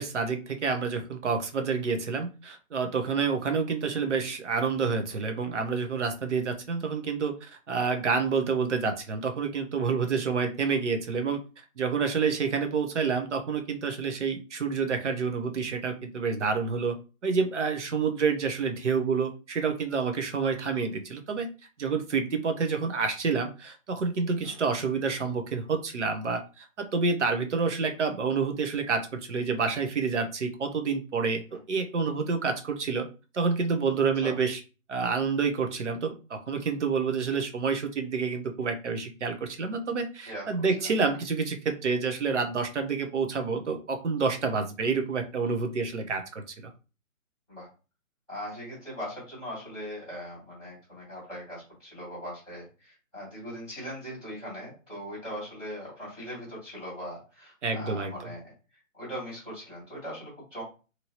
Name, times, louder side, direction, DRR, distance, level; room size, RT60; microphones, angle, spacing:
voice 1, 0.0-11.4 11.8-16.9 17.2-21.5 21.8-31.4 31.7-33.1 33.3-34.6 34.9-46.7 57.6-58.1, right 5 dB, 55° right, 6 dB, 0.8 m, -28 dB
voice 2, 48.3-60.6, equal, ahead, -15 dB, 1.0 m, -40 dB
2.9 x 2.6 x 2.8 m, 0.33 s
hypercardioid pair, 170°, 42 cm